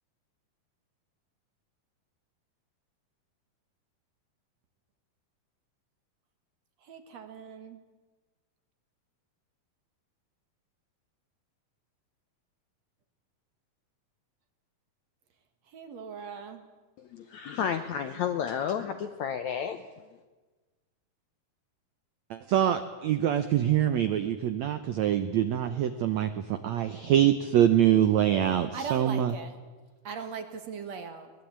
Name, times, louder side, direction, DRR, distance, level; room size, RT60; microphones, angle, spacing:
voice 1, 6.8-7.8 15.7-16.6 28.7-29.6 30.0-31.3, right 6 dB, 55° right, 8 dB, 2.4 m, -39 dB
voice 2, 17.1-19.8, left 8 dB, 75° left, 8 dB, 1.7 m, -31 dB
voice 3, 22.3-29.3, right 10 dB, 80° right, 10 dB, 1.6 m, -25 dB
22.5 x 19.5 x 8.7 m, 1.3 s
omnidirectional pair, 4.4 m